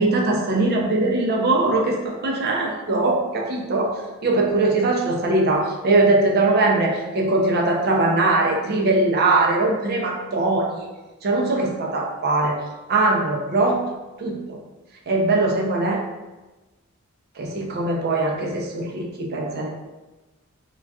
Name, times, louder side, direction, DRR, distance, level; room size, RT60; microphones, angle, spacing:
voice 1, 0.0-10.9 11.2-12.6 12.9-13.8 14.2-14.6 15.1-16.0 17.4-19.7, right 2 dB, 50° right, -1 dB, 0.5 m, -21 dB
3.8 x 2.3 x 2.3 m, 1.1 s
head